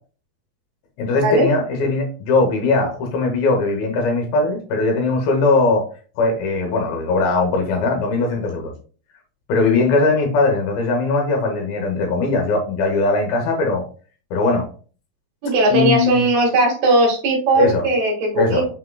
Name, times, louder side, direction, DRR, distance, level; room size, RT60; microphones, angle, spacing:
voice 1, 1.0-5.9 6.2-8.7 9.5-13.8 14.3-14.7 15.7-16.2 17.6-17.8 18.4-18.7, left 3 dB, 75° left, 2.6 m, -19 dB
voice 2, 15.4-18.6, right 1 dB, 55° right, 2.4 m, -18 dB
5.9 x 3.6 x 2.2 m
omnidirectional pair, 4.5 m